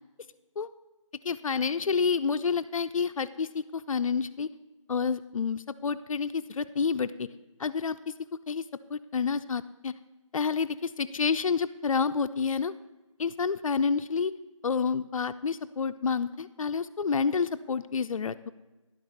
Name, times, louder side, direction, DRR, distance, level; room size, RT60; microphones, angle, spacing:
voice 1, 1.2-4.5 4.9-7.3 7.6-8.1 8.5-8.6 8.9-9.9 10.3-12.7 13.2-14.3 14.6-18.5, left 5 dB, 80° left, 11 dB, 0.4 m, -29 dB
10.5 x 5.9 x 6.9 m, 1.1 s
figure-of-eight pair, 180°, 17 cm